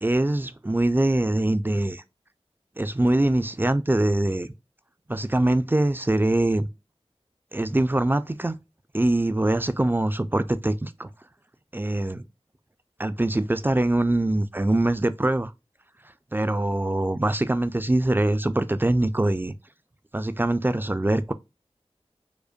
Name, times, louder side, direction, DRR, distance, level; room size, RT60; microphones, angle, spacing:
voice 1, 0.0-2.0 2.8-4.5 5.1-6.7 7.5-8.5 8.9-11.1 11.7-12.2 13.0-15.5 16.3-19.5 20.1-21.3, right 1 dB, 20° right, 0.3 m, -23 dB
5.0 x 2.1 x 2.4 m
wide cardioid pair, 45°, 11 cm